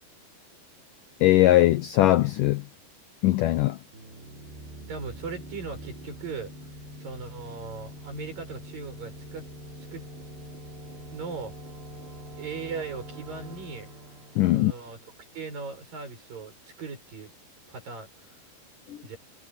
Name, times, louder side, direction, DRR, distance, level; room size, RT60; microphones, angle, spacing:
voice 1, 1.2-2.6 3.2-3.8 14.4-14.7 18.9-19.0, left 15 dB, 80° left, 1.9 m, -20 dB
sound 1, 3.9-15.5, equal, 70° right, 8.0 m, -44 dB
voice 2, 4.9-6.5 7.0-9.5 9.9-10.1 11.1-11.5 12.4-13.9 14.5-17.3 17.7-18.1 19.0-19.2, right 4 dB, 50° right, 8.9 m, -38 dB
omnidirectional pair, 5.0 m